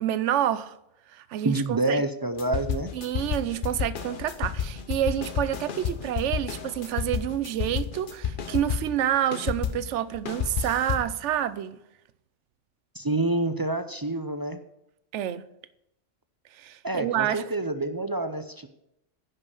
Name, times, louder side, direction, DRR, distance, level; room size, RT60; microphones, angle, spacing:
voice 1, 0.0-0.8 1.1-2.0 2.9-11.8 15.1-15.5 16.6-17.4, right 11 dB, 75° right, 0.9 m, -28 dB
voice 2, 1.4-2.9 12.9-14.6 16.8-18.7, right 2 dB, 35° right, 0.3 m, -27 dB
sound 1, 2.4-9.0 9.3-11.2, left 8 dB, 50° left, 0.9 m, -31 dB
10.5 x 5.5 x 8.2 m
omnidirectional pair, 1.3 m